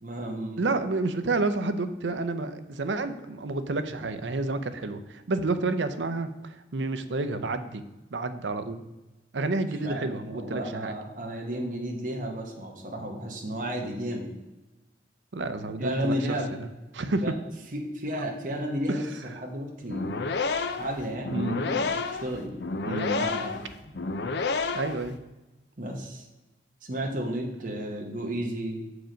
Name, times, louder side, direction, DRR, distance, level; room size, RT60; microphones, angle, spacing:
voice 1, 0.0-0.7 9.8-14.3 15.8-16.5 17.2-17.3 17.7-20.2 20.8-22.5 23.1-23.6 25.8-26.3 26.8-28.9, equal, 45° right, -1 dB, 1.1 m, -33 dB
voice 2, 0.6-7.8 8.1-8.8 9.3-11.0 15.3-16.2 16.5-16.7 16.9-17.3 18.2-18.3 18.9-19.0 21.3-21.6 22.8-23.3 24.7-25.2, right 3 dB, 85° right, 10 dB, 0.6 m, -30 dB
sound 1, 19.8-25.1, left 4 dB, 70° left, 0.5 m, -30 dB
7.5 x 4.8 x 5.1 m, 1.1 s
head